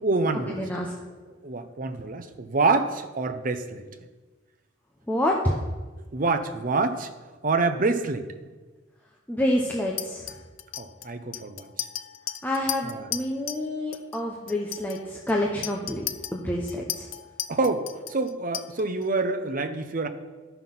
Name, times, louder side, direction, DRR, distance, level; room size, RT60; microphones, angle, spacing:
voice 1, 0.0-0.6 1.4-3.8 6.1-7.1 7.4-8.3 10.8-11.7 12.8-13.1 17.5-20.1, right 3 dB, 45° right, 8 dB, 0.7 m, -26 dB
voice 2, 0.6-0.9 5.1-5.6 9.3-10.3 12.4-16.0 16.3-17.1, left 1 dB, 10° left, -2 dB, 0.7 m, -27 dB
Chink clink, 10.0-13.7 13.9-14.2 14.5-19.0, left 12 dB, 90° left, 0.5 m, -36 dB
12.5 x 5.6 x 5.8 m, 1.3 s
head